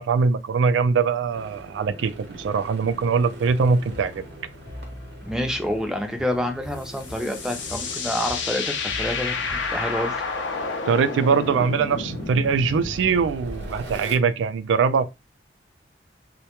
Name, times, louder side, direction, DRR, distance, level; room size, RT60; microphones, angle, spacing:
voice 1, 0.0-4.2 10.9-15.1, right 5 dB, 90° right, 0.3 m, -22 dB
sound 1, 1.3-14.2, right 1 dB, 65° right, 0.7 m, -43 dB
sound 2, 3.4-10.6, left 1 dB, 60° left, 0.8 m, -43 dB
voice 2, 5.2-10.2, left 1 dB, 5° right, 0.4 m, -28 dB
sound 3, 6.8-14.0, left 4 dB, 85° left, 0.5 m, -31 dB
2.1 x 2.1 x 2.9 m
head